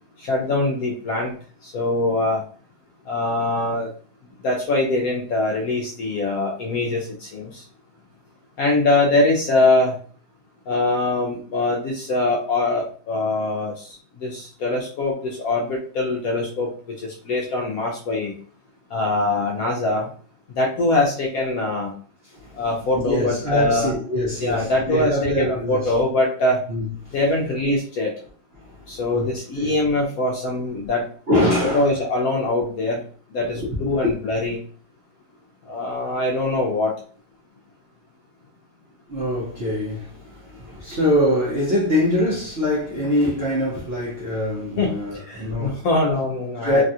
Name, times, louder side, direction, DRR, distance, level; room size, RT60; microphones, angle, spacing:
voice 1, 0.2-1.3 1.6-2.4 3.1-3.9 4.4-7.6 8.6-9.9 10.7-18.3 18.9-20.1 20.5-21.9 22.6-23.9 24.4-26.6 27.1-28.1 28.9-31.1 31.7-33.0 33.3-34.6 35.7-36.9 44.8-44.9 45.3-46.8, left 2 dB, 70° left, 0.9 m, -23 dB
voice 2, 22.9-25.9 26.7-26.9 28.7-28.9 29.1-29.3 29.6-29.8 31.3-31.9 33.6-33.7 34.0-34.1 39.1-45.9 46.6-46.8, left 1 dB, 50° right, 0.8 m, -23 dB
3.2 x 2.3 x 2.6 m
omnidirectional pair, 2.0 m